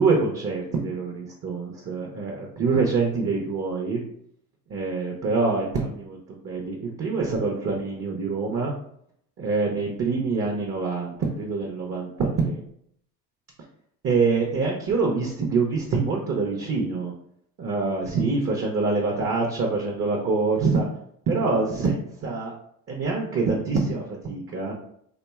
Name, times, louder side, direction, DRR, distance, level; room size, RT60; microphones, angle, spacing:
voice 1, 0.0-4.0 4.7-8.7 9.4-12.6 14.0-17.1 17.6-20.9 21.3-22.5 22.9-24.7, right 4 dB, 30° right, 0 dB, 0.5 m, -25 dB
2.5 x 2.1 x 2.3 m, 0.69 s
hypercardioid pair, 55°, 48 cm